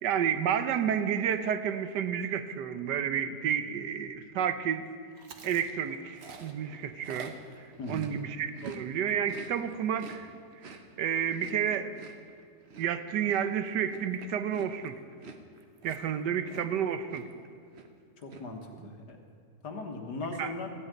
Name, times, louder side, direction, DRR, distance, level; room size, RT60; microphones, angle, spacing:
voice 1, 0.0-4.9 5.4-7.3 7.9-10.3 10.6-10.7 11.0-12.0 12.8-15.0 15.8-17.3 18.7-18.9 20.4-20.5, right 8 dB, 90° right, 11 dB, 1.4 m, -30 dB
Chewing mastication, 5.2-8.8 9.1-16.8 17.1-17.5 17.7-18.4, right 4 dB, 45° right, 1.1 m, -48 dB
voice 2, 18.2-19.2 19.6-20.7, left 3 dB, 75° left, 4 dB, 2.0 m, -38 dB
14.5 x 8.3 x 9.2 m, 2.2 s
omnidirectional pair, 1.8 m